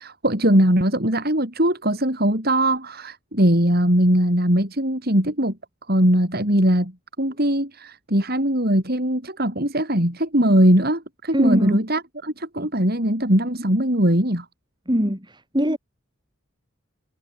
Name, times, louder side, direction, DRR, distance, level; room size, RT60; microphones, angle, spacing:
voice 1, 0.0-5.5 5.9-6.9 7.2-14.5, right 1 dB, 50° right, 7.3 m, -20 dB
voice 2, 11.3-11.9 14.9-15.8, equal, 20° right, 7.6 m, -22 dB
head